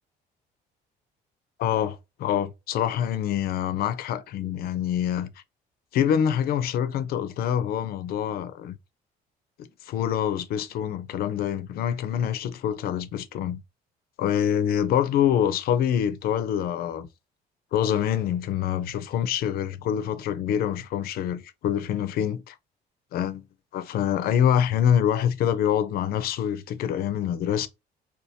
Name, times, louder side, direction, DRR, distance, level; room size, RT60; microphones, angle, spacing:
voice 1, 1.6-5.3 5.9-8.7 9.8-13.6 14.2-17.1 17.7-22.6 23.1-23.4 23.7-27.7, left 9 dB, 65° left, 0.4 m, -25 dB
2.6 x 2.3 x 2.7 m
cardioid pair, 110°, 17 cm